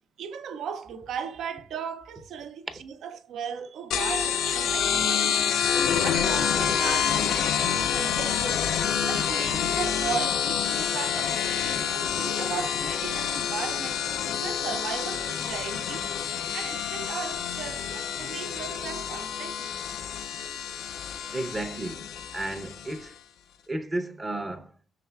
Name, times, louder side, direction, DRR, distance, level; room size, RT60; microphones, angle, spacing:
voice 1, 0.2-5.5 6.0-8.7 9.0-14.0 14.4-16.1 16.5-19.8, right 7 dB, 70° right, 0.4 m, -37 dB
sound 1, 3.9-23.1, left 8 dB, 80° left, 0.4 m, -28 dB
voice 2, 21.3-22.1 22.3-23.1 23.7-24.7, right 2 dB, 20° right, 0.6 m, -33 dB
5.7 x 3.1 x 2.2 m
cardioid pair, 90°, 0 cm